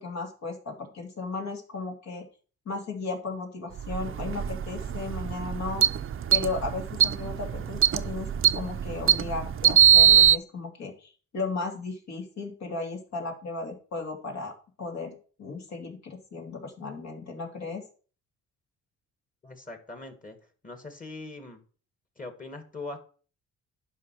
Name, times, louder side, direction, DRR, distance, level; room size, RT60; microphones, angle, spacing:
voice 1, 0.0-2.3 2.6-5.8 6.3-14.5 14.8-17.8, left 3 dB, 60° left, 1 dB, 2.8 m, -35 dB
sound 1, 3.8-10.4, right 8 dB, 45° right, 0.6 m, -22 dB
voice 2, 19.4-20.4 20.6-21.6 22.2-23.0, left 2 dB, 25° left, 5 dB, 1.9 m, -41 dB
11.0 x 5.3 x 4.6 m, 0.40 s
cardioid pair, 90°, 30 cm